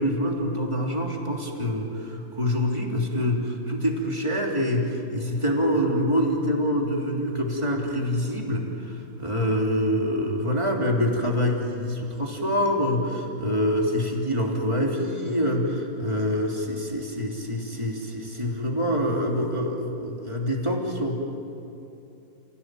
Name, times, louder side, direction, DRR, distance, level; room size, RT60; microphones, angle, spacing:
voice 1, 0.0-21.2, equal, 10° right, -1 dB, 2.9 m, -26 dB
29.0 x 17.5 x 9.2 m, 2.7 s
omnidirectional pair, 3.6 m